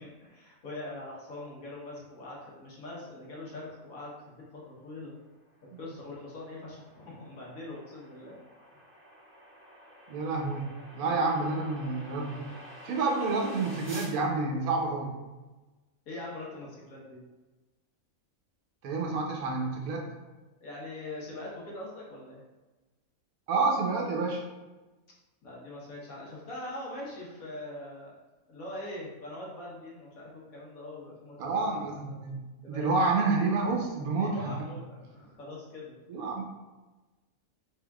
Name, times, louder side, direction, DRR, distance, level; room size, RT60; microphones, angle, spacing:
voice 1, 0.0-5.1 5.8-8.4 11.0-11.2 16.0-17.2 20.6-22.4 25.4-28.1 28.5-31.3 32.1-32.2 32.6-32.9 34.2-35.9, left 2 dB, 85° left, -5 dB, 1.5 m, -42 dB
sound 1, 5.5-14.2, right 1 dB, 15° right, 0.4 m, -49 dB
voice 2, 10.1-12.5 12.8-15.1 18.8-20.1 23.5-24.4 31.4-32.4 32.7-34.5 36.1-36.4, right 3 dB, 90° right, 0 dB, 1.2 m, -29 dB
3.6 x 3.6 x 2.3 m, 1.2 s
omnidirectional pair, 1.5 m